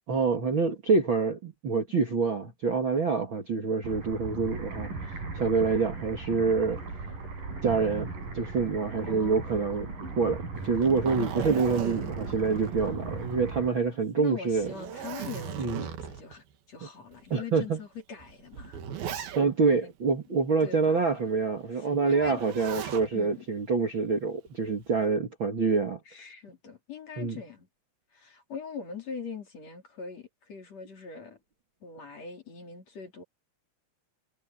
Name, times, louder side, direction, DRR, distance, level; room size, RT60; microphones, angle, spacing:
voice 1, 0.1-4.9 5.3-6.8 7.6-8.1 8.3-9.9 10.1-14.7 15.6-15.8 17.3-17.8 19.3-26.0 27.2-27.4, right 4 dB, 80° right, 1.1 m, -26 dB
sound 1, 3.8-13.7, right 3 dB, 40° right, 8.3 m, -38 dB
voice 2, 9.0-10.1 11.7-12.8 14.2-18.8 19.8-19.9 20.6-21.2 21.7-22.4 23.1-23.5 26.1-27.7 28.1-31.4 31.8-33.2, left 6 dB, 35° left, 4.0 m, -43 dB
Zipper (clothing), 10.6-13.5 13.9-14.0 14.5-16.4 17.1-17.2 18.2-19.7 22.2-23.1 24.5-24.9, right 9 dB, 60° right, 3.3 m, -37 dB
omnidirectional pair, 5.8 m